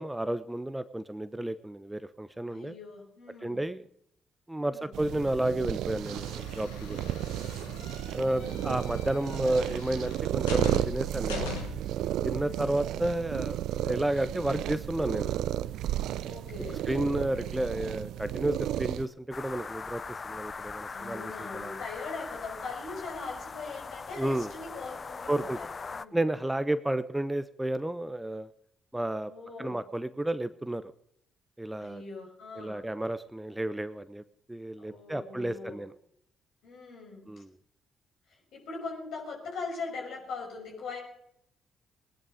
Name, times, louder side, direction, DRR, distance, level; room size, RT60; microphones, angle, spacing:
voice 1, 0.0-2.7 3.4-3.8 4.5-7.1 8.1-11.5 12.2-13.6 13.8-15.3 16.9-21.7 24.2-24.5 25.3-25.6 26.1-28.5 28.9-29.3 29.6-30.9 31.6-32.0 32.6-34.2 34.5-35.9 37.3-37.5, right 1 dB, 10° right, 13 dB, 0.9 m, -31 dB
voice 2, 2.5-3.6 4.6-4.9 8.0-8.7 12.3-12.7 16.2-16.8 20.9-26.2 29.2-29.8 31.8-32.8 34.8-35.8 36.6-37.4 38.3-41.0, left 4 dB, 65° left, 1 dB, 5.9 m, -41 dB
sound 1, 4.9-19.1, right 12 dB, 70° right, 0.6 m, -33 dB
sound 2, 6.0-12.0, left 6 dB, 85° left, 1.9 m, -41 dB
sound 3, 19.3-26.1, left 4 dB, 40° left, 0.7 m, -40 dB
20.0 x 11.0 x 5.1 m, 0.70 s
hypercardioid pair, 45°, 0 cm